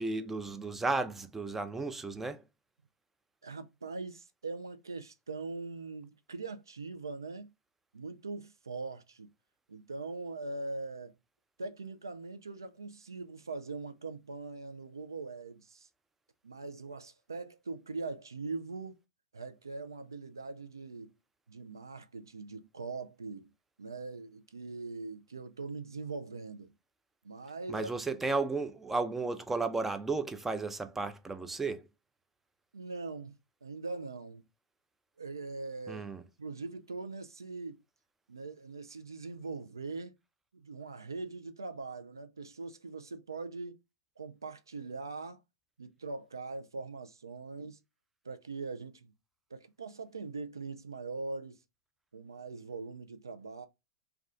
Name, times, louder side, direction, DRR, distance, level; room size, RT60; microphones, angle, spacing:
voice 1, 0.0-2.4 27.7-31.9 35.9-36.2, right 3 dB, 10° right, 0.4 m, -34 dB
voice 2, 3.4-7.5 7.9-9.3 9.7-11.1 11.6-15.9 16.4-19.0 19.3-21.1 21.5-23.5 23.8-26.7 27.2-27.9 32.7-33.3 33.6-34.4 35.2-36.1 36.4-37.8 38.3-40.1 40.5-43.8 44.2-45.4 45.8-47.8 48.2-49.1 49.5-51.6 52.1-53.7, right 3 dB, 90° right, 0.4 m, -41 dB
2.4 x 2.3 x 3.5 m
hypercardioid pair, 100°, 2 cm